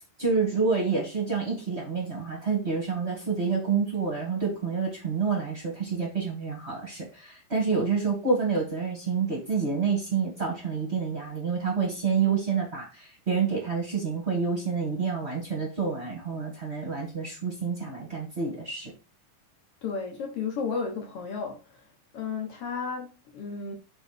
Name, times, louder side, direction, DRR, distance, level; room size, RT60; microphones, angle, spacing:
voice 1, 0.2-18.9, right 5 dB, 35° right, 1.1 m, -28 dB
voice 2, 19.8-21.8 22.1-23.7, left 5 dB, 75° left, 1.3 m, -33 dB
5.2 x 4.6 x 5.0 m
omnidirectional pair, 4.2 m